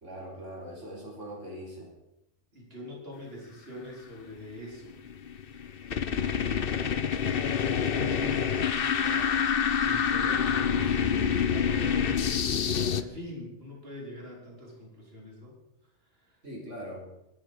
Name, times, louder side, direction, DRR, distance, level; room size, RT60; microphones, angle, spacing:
voice 1, 0.0-1.9 16.4-17.1, equal, 85° right, -2 dB, 4.6 m, -41 dB
voice 2, 2.5-4.9 6.1-6.4 6.8-15.5 16.1-16.4, left 1 dB, 55° right, -3 dB, 4.5 m, -44 dB
sound 1, 4.9-13.0, left 7 dB, 55° left, 1.0 m, -27 dB
24.0 x 11.5 x 5.0 m, 0.88 s
omnidirectional pair, 1.2 m